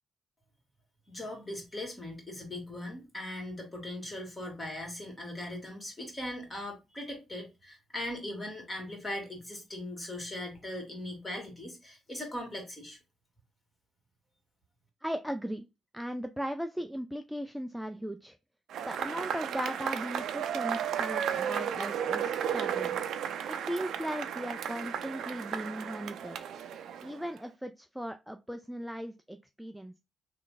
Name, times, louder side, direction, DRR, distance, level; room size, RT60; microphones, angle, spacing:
voice 1, 1.1-13.0, left 1 dB, 20° left, 1.9 m, -39 dB
voice 2, 15.0-15.7 15.9-18.4 18.9-23.0 23.5-26.4 27.0-30.0, equal, ahead, 0.3 m, -37 dB
Cheering / Applause / Crowd, 18.7-27.4, right 8 dB, 70° right, 0.4 m, -34 dB
3.2 x 2.4 x 3.8 m
cardioid pair, 90°, 0 cm